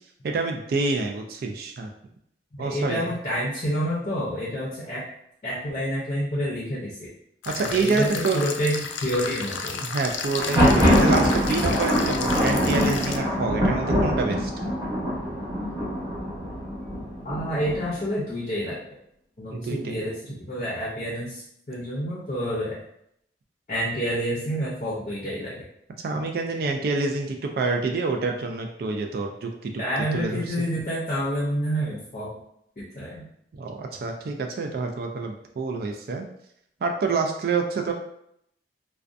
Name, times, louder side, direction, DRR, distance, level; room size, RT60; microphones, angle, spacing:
voice 1, 0.2-1.9 2.6-3.1 7.5-8.5 9.8-14.5 19.5-20.0 26.0-29.7 30.1-30.4 33.5-36.3 36.8-37.9, right 3 dB, 55° right, 3 dB, 0.3 m, -27 dB
voice 2, 2.6-5.1 5.4-7.1 7.6-9.8 17.2-18.8 19.4-20.1 20.5-21.4 21.7-22.8 23.7-25.6 29.8-32.4 32.8-33.3, equal, 40° left, -6 dB, 0.5 m, -28 dB
sound 1, 7.4-13.2, left 5 dB, 90° left, 0.3 m, -33 dB
Thunder, 10.3-18.1, equal, 20° right, 0.8 m, -23 dB
2.4 x 2.2 x 2.5 m, 0.74 s
head